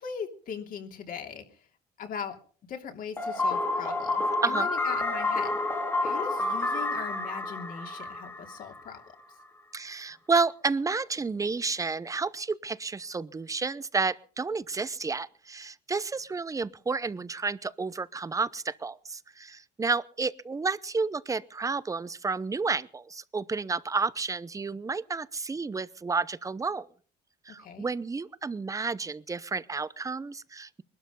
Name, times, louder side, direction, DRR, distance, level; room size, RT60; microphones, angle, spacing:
voice 1, 0.0-1.4 2.0-2.4 2.7-5.6 6.0-9.0 27.6-27.9, left 7 dB, 55° left, 4 dB, 3.1 m, -39 dB
sound 1, 3.2-9.0, left 2 dB, 15° left, 2.2 m, -29 dB
voice 2, 9.7-26.9 27.5-30.8, right 4 dB, 20° right, 17 dB, 0.7 m, -31 dB
21.0 x 12.5 x 5.4 m, 0.43 s
cardioid pair, 110°, 17 cm